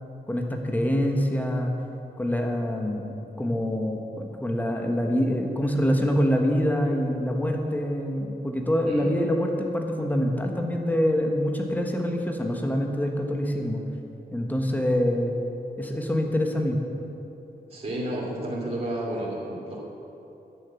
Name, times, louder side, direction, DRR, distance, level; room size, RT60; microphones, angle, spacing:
voice 1, 0.3-1.7 2.2-3.0 3.4-13.8 14.3-15.3 15.8-16.8, equal, 10° left, 2 dB, 1.3 m, -25 dB
voice 2, 17.7-19.8, right 1 dB, 40° right, -5 dB, 2.6 m, -31 dB
11.0 x 7.0 x 9.1 m, 3.0 s
wide cardioid pair, 105°, 17 cm